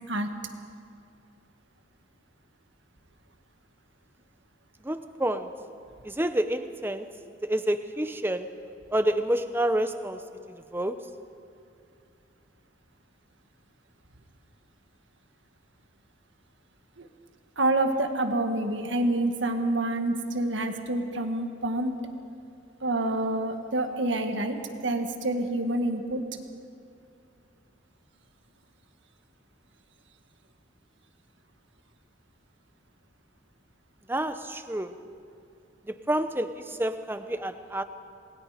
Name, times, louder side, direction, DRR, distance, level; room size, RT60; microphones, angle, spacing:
voice 1, 4.8-5.5 6.0-7.1 7.4-8.5 8.9-10.2 10.7-11.1 34.1-34.9 35.9-37.8, right 1 dB, 10° right, 9 dB, 0.8 m, -28 dB
voice 2, 17.6-22.0 22.8-24.6 24.8-26.2, right 2 dB, 70° right, 5 dB, 1.8 m, -27 dB
27.5 x 20.5 x 5.1 m, 2.5 s
head